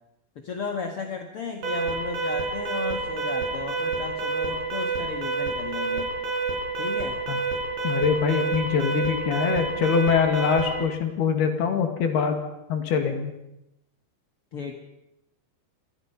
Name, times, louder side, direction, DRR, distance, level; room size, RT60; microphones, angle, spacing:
voice 1, 0.4-6.1 6.8-7.2 14.5-14.7, left 5 dB, 50° left, 4 dB, 1.7 m, -34 dB
Alarm, 1.6-10.8, right 3 dB, 85° right, 7.4 m, -28 dB
voice 2, 7.8-12.4 12.7-13.3, left 6 dB, 70° left, 6 dB, 4.2 m, -24 dB
27.0 x 23.0 x 5.6 m, 0.87 s
omnidirectional pair, 4.9 m